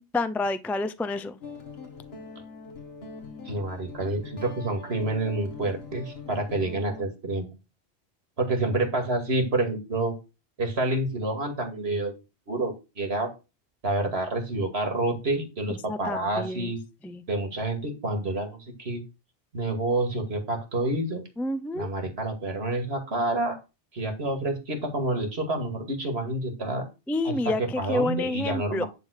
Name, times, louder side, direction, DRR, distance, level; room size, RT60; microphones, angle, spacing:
voice 1, 0.0-1.4 15.9-16.7 17.0-17.2 21.4-21.9 27.1-28.8, left 2 dB, ahead, 0.4 m, -29 dB
Guitar, 1.4-7.0, left 4 dB, 65° left, 1.8 m, -42 dB
voice 2, 3.4-7.5 8.4-10.1 10.6-12.2 12.5-13.3 13.8-16.8 17.3-19.0 19.5-21.2 21.7-23.6 23.9-26.9 27.2-28.9, right 2 dB, 65° right, 2.5 m, -28 dB
11.0 x 3.7 x 6.4 m
omnidirectional pair, 1.1 m